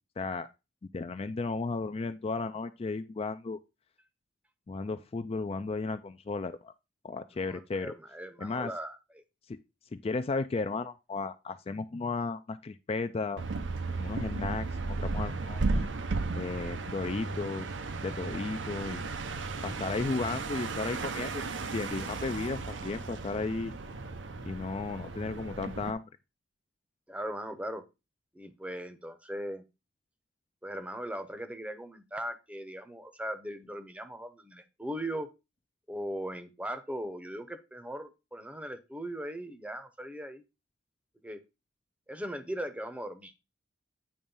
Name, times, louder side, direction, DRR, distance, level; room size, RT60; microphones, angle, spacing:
voice 1, 0.2-0.5 0.9-3.6 4.7-6.7 7.0-7.9 8.4-8.7 9.5-9.6 9.9-13.4 14.0-15.8 16.3-17.7 18.0-19.0 19.6-23.8 24.4-26.1, left 3 dB, 30° left, 0.4 m, -34 dB
voice 2, 7.5-9.2 27.1-27.8 28.3-29.6 30.6-35.3 35.9-40.4 41.2-41.4 42.1-43.3, right 1 dB, 5° right, 0.7 m, -39 dB
sound 1, 13.4-25.9, right 3 dB, 80° right, 0.8 m, -35 dB
8.7 x 3.2 x 5.4 m
head